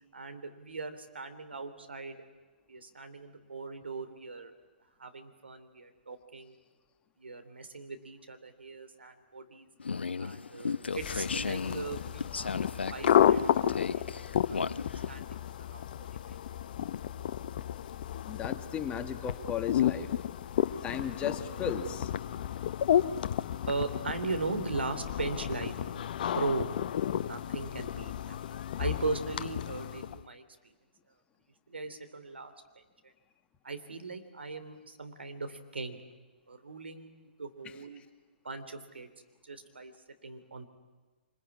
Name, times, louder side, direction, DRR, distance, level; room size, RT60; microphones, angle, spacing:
voice 1, 0.1-2.2 2.7-4.5 5.0-6.6 7.2-9.7 10.2-12.5 12.9-13.4 13.7-14.0 14.5-14.6 15.1-15.4 15.7-15.8 16.2-16.4 23.7-25.9 26.3-26.7 27.1-28.4 28.8-30.7 31.7-32.5 33.6-36.0 36.5-37.1 37.4-38.0 38.4-39.1 39.4-39.9 40.2-40.7, right 3 dB, 80° right, 8 dB, 3.3 m, -38 dB
sound 1, 9.8-15.2, left 5 dB, 75° left, 0.9 m, -36 dB
sound 2, 10.9-30.2, left 10 dB, 50° left, 0.9 m, -32 dB
voice 2, 18.3-20.1 20.8-22.1 37.6-37.8, left 7 dB, 20° left, 7 dB, 1.8 m, -35 dB
25.5 x 21.5 x 9.8 m, 1.3 s
figure-of-eight pair, 130°, 6 cm